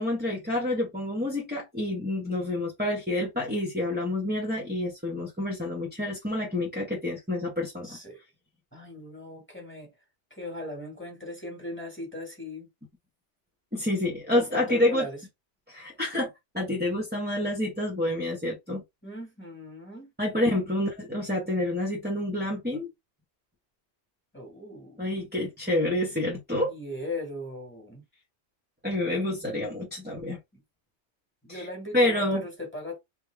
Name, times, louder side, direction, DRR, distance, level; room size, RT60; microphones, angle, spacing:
voice 1, 0.0-8.0 13.7-15.1 15.7-18.8 20.2-22.9 25.0-26.7 28.8-30.4 31.5-31.7 31.9-32.4, left 1 dB, 10° right, 1.1 m, -28 dB
voice 2, 7.8-8.2 8.7-9.9 10.3-12.7 14.3-15.2 19.0-20.1 24.3-25.1 26.7-28.0 30.5-30.6 31.4-33.0, left 2 dB, 10° left, 1.6 m, -38 dB
3.5 x 2.9 x 3.3 m
omnidirectional pair, 1.2 m